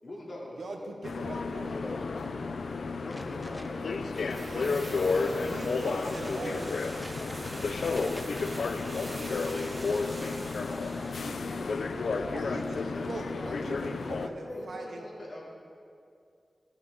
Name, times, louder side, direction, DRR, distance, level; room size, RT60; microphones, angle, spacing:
voice 1, 0.0-1.0 1.5-2.4 2.7-4.0 4.9-6.9 9.3-9.4 11.1-13.7 14.4-15.5, left 1 dB, 60° left, -5 dB, 2.6 m, -43 dB
voice 2, 0.6-1.9 4.2-4.9 5.5-6.7 12.3-12.8 13.0-15.0, right 2 dB, 90° right, 3 dB, 1.0 m, -41 dB
sound 1, 1.0-14.3, left 4 dB, 85° left, 0.4 m, -32 dB
Bowed string instrument, 1.6-6.7, left 1 dB, 40° left, 1.6 m, -51 dB
voice 3, 3.1-3.7 4.1-5.6 6.2-6.7 7.0-10.0 10.5-11.3, equal, 5° left, 2 dB, 1.0 m, -51 dB
sound 2, 4.2-11.5 11.7-11.8, right 1 dB, 40° right, 1.2 m, -44 dB
15.5 x 6.6 x 3.6 m, 2.4 s
wide cardioid pair, 65°, 0 cm